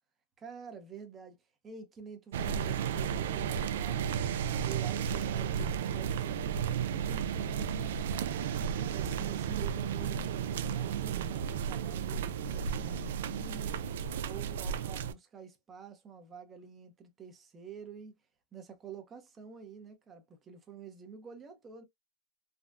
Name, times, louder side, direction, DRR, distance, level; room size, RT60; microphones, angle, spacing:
voice 1, 0.4-1.4 1.6-4.2 4.6-8.1 8.9-13.8 14.2-18.1 18.5-21.8, right 7 dB, 15° right, 0.6 m, -48 dB
sound 1, 2.3-15.1, right 8 dB, 80° right, 0.3 m, -33 dB
3.4 x 2.0 x 2.5 m
supercardioid pair, 165°, 0 cm